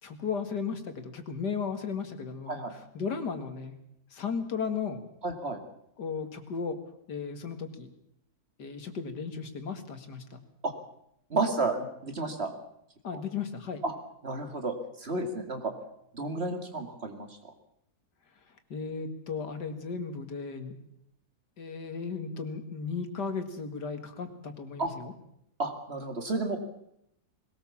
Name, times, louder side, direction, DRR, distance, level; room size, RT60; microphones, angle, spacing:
voice 1, 0.0-2.7 2.9-3.7 4.1-5.0 6.0-6.8 7.1-7.9 8.6-10.4 13.0-13.8 18.7-20.8 21.6-25.1, left 5 dB, 90° left, 8 dB, 2.6 m, -35 dB
voice 2, 5.2-5.6 10.6-10.7 11.3-12.5 13.1-13.2 13.8-13.9 14.2-15.7 16.1-17.5 24.8-24.9 25.6-26.6, right 3 dB, 40° right, 6 dB, 2.5 m, -32 dB
20.5 x 18.5 x 7.2 m, 0.75 s
omnidirectional pair, 1.7 m